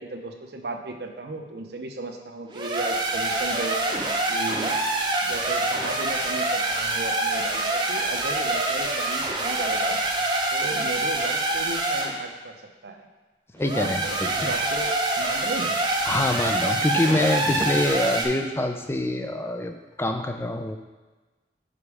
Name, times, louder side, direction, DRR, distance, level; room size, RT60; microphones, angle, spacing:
voice 1, 0.0-3.8 4.3-4.8 5.2-10.0 10.5-12.6 12.8-13.1 13.7-15.8 16.1-16.2, right 2 dB, 65° right, 4 dB, 0.7 m, -35 dB
sound 1, 2.5-12.1 13.6-18.2, right 2 dB, 25° right, 0.7 m, -26 dB
voice 2, 13.5-14.5 16.1-20.8, left 1 dB, 15° left, 6 dB, 0.4 m, -25 dB
6.0 x 5.1 x 4.8 m, 1.2 s
head